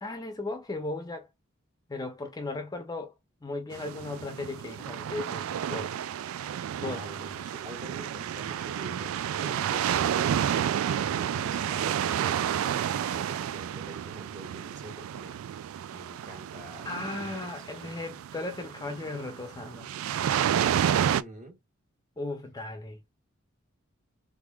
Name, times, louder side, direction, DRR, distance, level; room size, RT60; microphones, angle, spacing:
voice 1, 0.0-1.3 1.9-3.1 3.4-5.9 6.8-7.1 16.9-19.9 22.2-23.0, left 2 dB, 20° left, 0.6 m, -36 dB
sound 1, 3.7-21.2, right 9 dB, 85° right, 0.3 m, -30 dB
voice 2, 6.8-10.3 10.9-15.4 15.9-17.5 17.8-17.9 20.9-21.6, right 1 dB, 35° right, 1.4 m, -45 dB
3.5 x 3.5 x 2.2 m
head